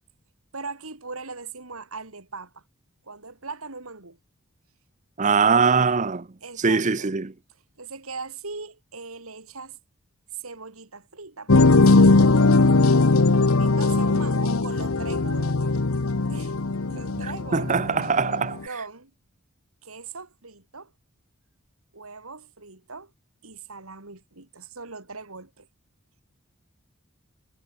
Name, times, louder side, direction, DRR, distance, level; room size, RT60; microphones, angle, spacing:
voice 1, 0.5-2.6 3.1-4.2 6.4-7.1 7.8-9.8 10.3-12.4 13.6-15.7 16.3-16.6 16.9-18.0 18.7-19.1 19.8-20.9 21.9-23.1 23.4-25.7, right 4 dB, 80° right, 3.6 m, -39 dB
voice 2, 5.2-6.3 6.6-7.3 17.2-18.6, right 5 dB, 35° right, 0.7 m, -22 dB
sound 1, 11.5-18.6, left 3 dB, 75° left, 1.0 m, -19 dB
head